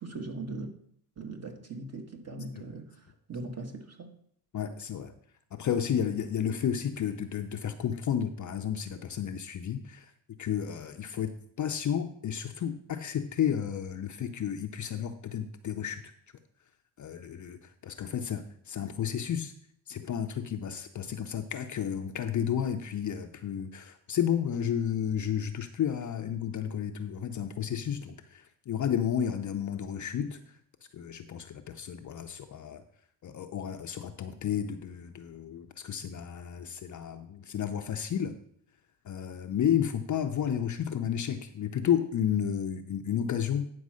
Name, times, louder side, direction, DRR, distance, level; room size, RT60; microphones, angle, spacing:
voice 1, 0.0-0.7 1.2-2.9 3.3-4.1, right 3 dB, 30° right, 1.6 m, -39 dB
voice 2, 4.5-5.1 5.5-10.1 10.4-11.3 11.6-16.0 17.0-19.5 19.9-30.4 30.9-32.8 33.2-38.4 39.1-43.6, left 9 dB, 40° left, 0.6 m, -32 dB
9.5 x 4.7 x 6.3 m
cardioid pair, 95°, 48 cm